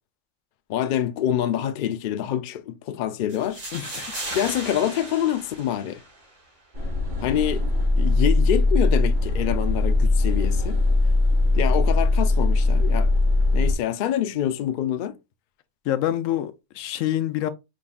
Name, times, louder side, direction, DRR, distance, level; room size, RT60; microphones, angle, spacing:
voice 1, 0.7-3.6 4.3-6.0 7.2-7.6 8.0-10.8 11.5-13.1 13.5-15.2, left 10 dB, 65° left, 0.5 m, -26 dB
sound 1, 3.3-6.3, right 2 dB, 75° right, 2.0 m, -36 dB
voice 2, 3.7-4.2 15.8-17.5, left 12 dB, 85° left, 1.0 m, -26 dB
sound 2, 6.7-13.7, left 2 dB, 40° right, 1.5 m, -20 dB
5.1 x 3.7 x 2.3 m
omnidirectional pair, 1.3 m